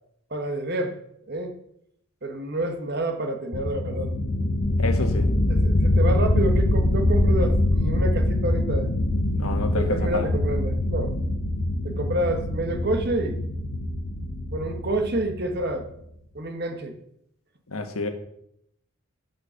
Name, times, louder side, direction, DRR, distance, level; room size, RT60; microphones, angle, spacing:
voice 1, 0.3-1.0 1.3-1.6 2.2-4.1 5.5-8.9 9.7-11.1 11.8-13.4 14.5-15.9 16.3-17.0, right 1 dB, 50° right, 6 dB, 1.3 m, -28 dB
sound 1, 3.5-15.9, left 1 dB, 55° left, 1.1 m, -24 dB
voice 2, 4.8-5.3 9.3-10.3 17.7-18.1, left 2 dB, 85° left, 6 dB, 1.4 m, -29 dB
11.5 x 5.4 x 5.7 m, 0.76 s
head